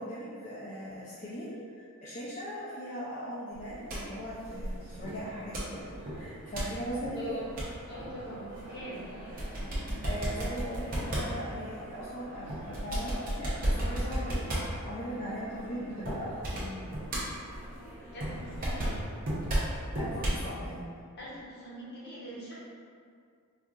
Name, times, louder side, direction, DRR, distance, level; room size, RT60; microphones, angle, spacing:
voice 1, 0.0-7.4 10.0-16.9 19.9-20.8, equal, 35° left, -8 dB, 0.4 m, -39 dB
sound 1, 3.5-20.5, right 1 dB, 40° right, 0.8 m, -35 dB
voice 2, 7.1-7.5 7.9-9.1 18.1-19.0 21.2-22.5, equal, 50° left, -7 dB, 0.9 m, -42 dB
4.4 x 2.4 x 2.4 m, 2.2 s
head